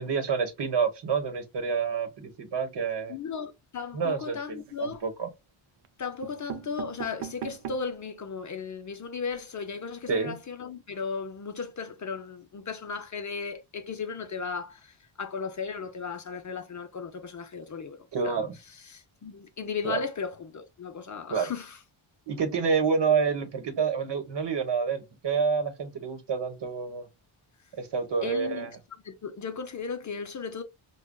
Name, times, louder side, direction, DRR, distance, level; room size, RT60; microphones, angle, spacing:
voice 1, 0.0-3.1 3.9-5.3 10.1-10.4 18.1-18.6 19.8-20.0 21.3-21.5 22.3-27.1 27.8-28.7, right 5 dB, 55° right, 1.1 m, -28 dB
voice 2, 3.1-5.0 6.0-18.4 18.7-21.8 28.2-28.7 29.0-30.6, left 5 dB, 35° left, 0.5 m, -36 dB
sound 1, 4.5-5.1 5.8-5.9 6.2-8.0 8.5-8.6 8.8-8.9 9.2-9.4, right 9 dB, 80° right, 0.7 m, -40 dB
4.9 x 2.3 x 2.2 m
cardioid pair, 100°, 50 cm